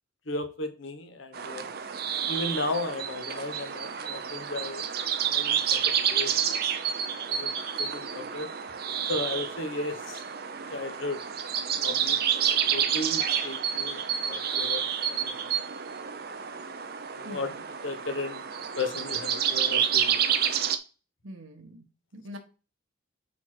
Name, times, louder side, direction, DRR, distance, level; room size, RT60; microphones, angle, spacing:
voice 1, 0.3-1.7 2.3-4.9 5.2-5.8 6.1-6.6 7.3-7.5 7.8-8.5 9.1-10.2 10.7-11.2 11.8-12.2 12.7-15.4 17.1-17.5 17.8-18.4 18.8-20.2, left 2 dB, 75° left, 1.1 m, -35 dB
sound 1, 1.3-20.8, right 8 dB, 50° right, 0.5 m, -29 dB
voice 2, 17.2-17.6 21.2-21.9 22.1-22.4, equal, 85° right, 1.3 m, -43 dB
4.5 x 4.3 x 5.8 m
head